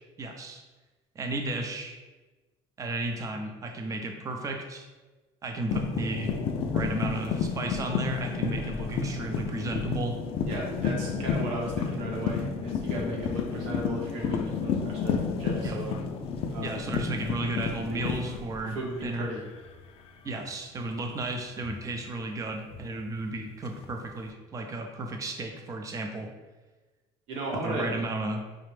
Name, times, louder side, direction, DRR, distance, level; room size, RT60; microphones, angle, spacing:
voice 1, 0.2-0.6 1.2-2.0 2.8-4.9 5.4-6.3 6.6-10.2 15.6-15.8 16.6-18.8 19.0-19.3 20.2-26.3 27.5-28.4, right 2 dB, 30° right, 3 dB, 0.5 m, -34 dB
sound 1, 5.7-19.2 19.5-19.9 21.6-21.8 23.7-24.3, left 5 dB, 55° left, 0.4 m, -31 dB
voice 2, 10.5-15.9 16.5-16.7 17.9-18.3 18.7-19.4 27.3-27.9, right 1 dB, 90° right, -2 dB, 1.1 m, -35 dB
4.9 x 2.1 x 3.2 m, 1.2 s
cardioid pair, 130°, 12 cm